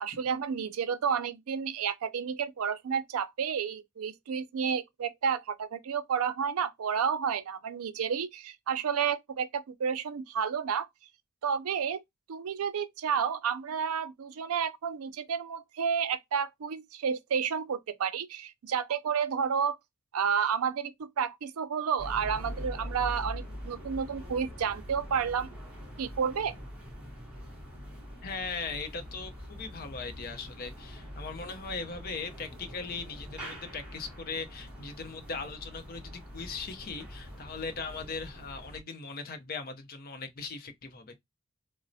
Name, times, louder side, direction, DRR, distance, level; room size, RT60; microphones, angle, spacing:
voice 1, 0.0-10.9 11.4-12.0 12.3-19.8 20.1-25.5 26.0-26.6, right 7 dB, 90° right, 0.4 m, -31 dB
sound 1, 22.0-38.8, equal, 5° right, 0.9 m, -43 dB
voice 2, 28.2-41.2, left 4 dB, 45° left, 0.5 m, -39 dB
4.0 x 2.0 x 2.6 m
head